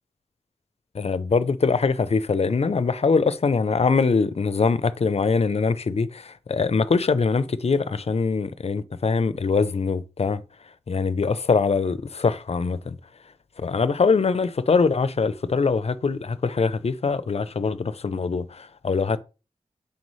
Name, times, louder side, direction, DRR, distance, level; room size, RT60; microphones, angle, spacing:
voice 1, 0.9-10.4 10.9-13.0 13.6-19.2, left 4 dB, 55° left, 0.6 m, -23 dB
6.8 x 5.4 x 3.1 m
wide cardioid pair, 80°, 13 cm